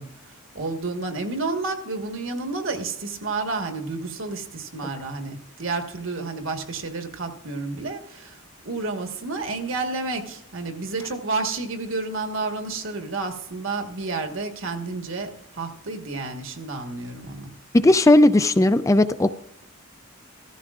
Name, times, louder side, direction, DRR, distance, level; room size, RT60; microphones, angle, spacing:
voice 1, 0.0-17.5, right 3 dB, 65° right, 5 dB, 1.5 m, -30 dB
voice 2, 17.7-19.3, left 1 dB, 15° left, 12 dB, 0.3 m, -16 dB
15.5 x 14.0 x 2.5 m, 0.75 s
head